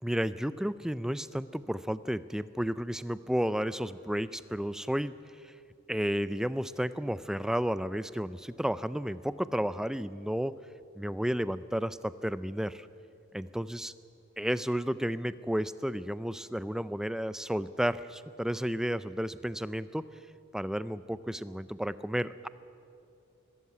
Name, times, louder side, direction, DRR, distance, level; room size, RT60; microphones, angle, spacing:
voice 1, 0.0-5.2 5.4-5.5 5.9-10.5 11.0-12.9 13.3-13.9 14.4-20.0 20.5-22.5, equal, 5° right, 15 dB, 0.4 m, -32 dB
22.0 x 13.0 x 9.5 m, 2.5 s
head